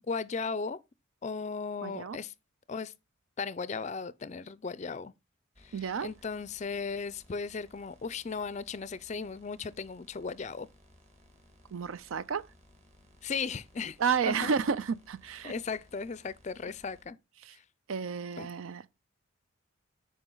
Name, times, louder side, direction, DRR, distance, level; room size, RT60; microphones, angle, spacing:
voice 1, 0.1-0.8 1.2-2.3 2.7-2.9 3.4-5.1 5.6-10.7 13.2-14.0 14.3-14.5 15.4-17.2 18.4-18.5, left 5 dB, 35° left, 0.4 m, -36 dB
voice 2, 1.8-2.2 5.7-6.1 11.7-12.4 14.0-15.5 17.4-17.5 17.9-18.8, right 6 dB, 75° right, 0.4 m, -31 dB
sound 1, 5.5-17.0, left 1 dB, 30° right, 1.8 m, -61 dB
9.0 x 5.0 x 3.8 m
head